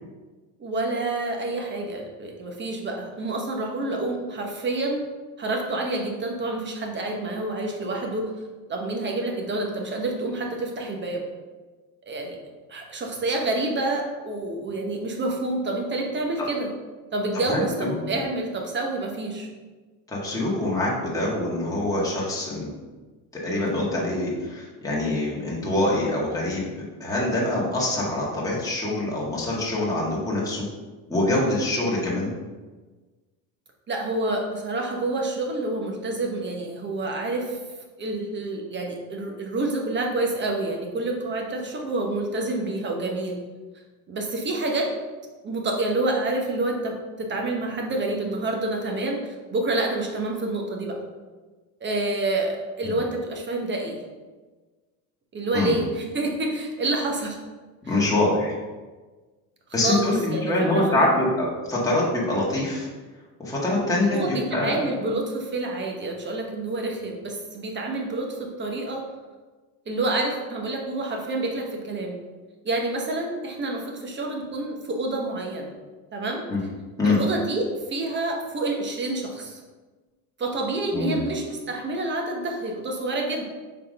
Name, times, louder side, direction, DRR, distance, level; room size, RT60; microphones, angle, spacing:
voice 1, 0.6-5.1 5.4-8.3 8.7-11.2 12.1-12.4 12.7-16.7 17.1-19.5 33.9-37.6 38.0-43.4 44.1-44.9 45.4-51.0 51.8-54.0 55.3-57.4 57.8-57.9 59.8-61.2 64.1-69.1 69.9-72.2 72.6-75.7 76.1-76.4 77.0-79.6 80.4-83.4, right 2 dB, 25° right, 1 dB, 1.1 m, -28 dB
voice 2, 17.5-18.2 20.1-22.7 23.4-26.7 27.0-30.6 31.1-32.3 52.8-53.0 55.5-55.7 57.9-58.6 59.7-62.9 63.4-64.8 76.5-76.6 77.0-77.2 80.9-81.2, left 2 dB, 10° left, -6 dB, 1.8 m, -24 dB
4.5 x 3.9 x 5.3 m, 1.3 s
supercardioid pair, 115°, 41 cm